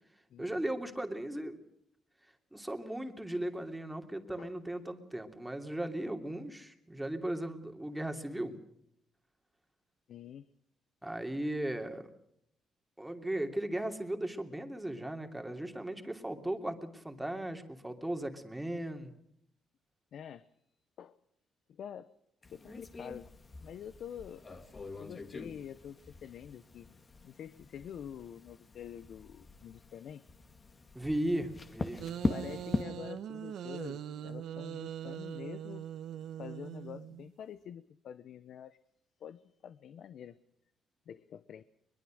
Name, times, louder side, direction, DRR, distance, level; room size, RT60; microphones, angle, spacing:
voice 1, 0.4-1.6 2.5-8.6 11.0-12.1 13.0-19.1 30.9-32.0, right 1 dB, 5° right, 5 dB, 2.9 m, -37 dB
voice 2, 10.1-10.5 20.1-20.5 21.0-21.2 21.7-22.1 22.5-23.3 23.6-24.4 25.0-26.9 27.2-30.2 32.3-35.8 36.4-38.8 39.2-40.4 41.1-41.6, left 8 dB, 70° left, 14 dB, 0.9 m, -47 dB
sound 1, 22.4-32.8, left 3 dB, 35° left, 2.0 m, -41 dB
sound 2, 32.0-37.3, right 10 dB, 75° right, 1.4 m, -42 dB
22.5 x 22.0 x 6.4 m, 0.74 s
cardioid pair, 90°, 0 cm